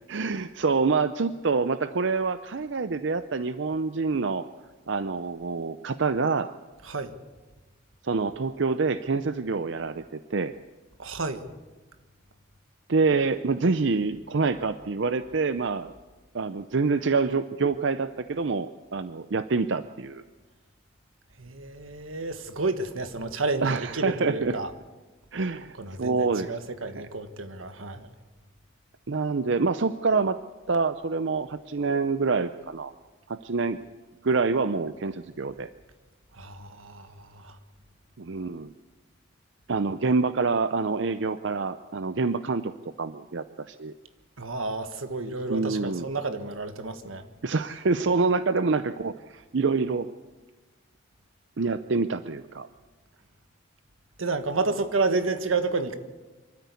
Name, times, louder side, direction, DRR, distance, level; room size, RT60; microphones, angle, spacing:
voice 1, 0.1-4.5 4.9-6.5 8.0-10.5 12.9-15.9 16.3-20.2 23.6-24.5 25.3-26.6 27.0-27.1 29.1-30.4 30.7-32.9 33.3-33.8 34.2-35.7 38.2-38.7 39.7-42.7 43.0-43.9 45.5-46.0 47.4-50.1 51.6-52.7, right 4 dB, 65° right, 0.6 m, -26 dB
voice 2, 11.0-11.4 21.4-24.7 25.8-28.1 36.3-37.6 44.4-47.3 54.2-56.0, right 3 dB, 90° right, 1.6 m, -30 dB
24.5 x 13.5 x 8.4 m
head